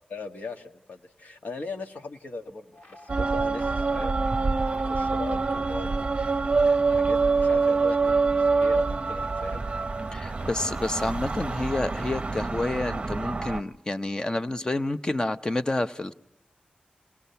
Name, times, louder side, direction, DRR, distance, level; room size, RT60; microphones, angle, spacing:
voice 1, 0.1-6.1 6.9-9.6, left 3 dB, 70° left, 4 dB, 1.6 m, -39 dB
sound 1, 2.7-12.6, right 1 dB, 50° left, 2.9 m, -48 dB
sound 2, 3.1-13.6, right 4 dB, 35° right, 0.8 m, -25 dB
voice 2, 10.1-16.1, left 2 dB, 25° left, 10 dB, 0.8 m, -29 dB
29.5 x 19.5 x 5.7 m, 0.83 s
wide cardioid pair, 105°, 3 cm